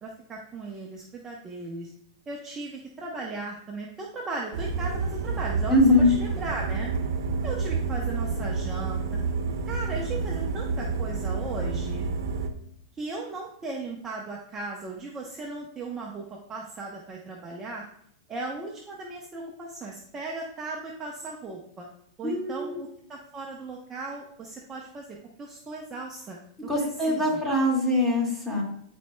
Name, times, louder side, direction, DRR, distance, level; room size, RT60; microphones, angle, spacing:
voice 1, 0.0-1.9 2.3-5.8 6.2-6.9 7.4-9.0 9.7-12.1 13.0-17.8 18.3-21.9 22.2-25.1 25.4-27.4, right 3 dB, 20° right, -2 dB, 0.9 m, -37 dB
sound 1, 4.5-12.5, right 4 dB, 75° right, 0.9 m, -29 dB
voice 2, 5.7-6.1 22.2-22.8 26.7-28.6, left 1 dB, 5° left, -3 dB, 2.1 m, -22 dB
11.5 x 4.4 x 2.2 m, 0.71 s
hypercardioid pair, 135°, 2 cm